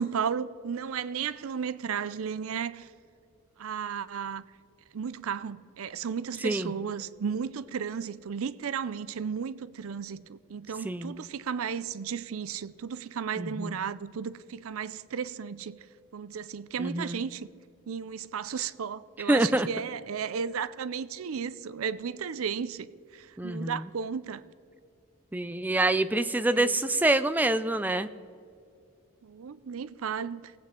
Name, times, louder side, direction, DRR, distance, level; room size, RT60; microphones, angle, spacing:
voice 1, 0.0-2.9 3.6-4.4 4.9-15.8 16.1-17.5 17.9-24.4 26.5-26.8 29.2-30.5, right 7 dB, 85° right, 0.5 m, -34 dB
voice 2, 13.4-13.8 16.8-17.2 19.3-19.7 23.4-23.7 25.3-28.1, right 2 dB, 10° right, 0.3 m, -26 dB
20.5 x 8.5 x 3.7 m
head